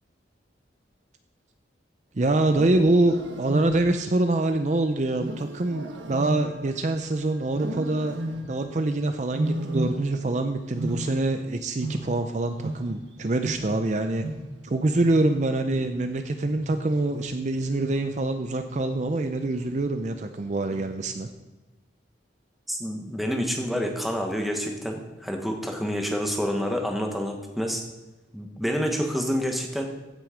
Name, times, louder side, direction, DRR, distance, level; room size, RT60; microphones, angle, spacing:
voice 1, 2.1-14.3 14.6-21.3, right 2 dB, 40° right, 7 dB, 0.5 m, -25 dB
Wild animals, 2.4-4.1 5.2-7.0 7.5-8.7 9.3-10.3 10.6-13.1 13.4-18.3 18.7-19.1 19.5-20.0 20.7-21.1, right 1 dB, 85° right, 1.3 m, -34 dB
voice 2, 22.7-27.8 28.3-29.9, equal, ahead, 2 dB, 1.2 m, -28 dB
15.5 x 6.3 x 5.0 m, 1.1 s
head